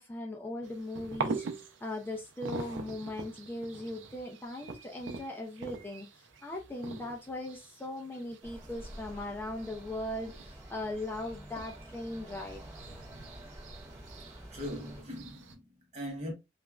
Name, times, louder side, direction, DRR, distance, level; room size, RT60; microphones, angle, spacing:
voice 1, 0.0-12.6, left 1 dB, 10° left, 0.3 m, -39 dB
sound 1, 0.6-15.6, right 4 dB, 85° right, 0.5 m, -44 dB
sound 2, 8.4-15.0, equal, 15° right, 0.9 m, -49 dB
voice 2, 14.3-16.3, equal, 35° right, 1.1 m, -41 dB
3.0 x 2.4 x 2.2 m
head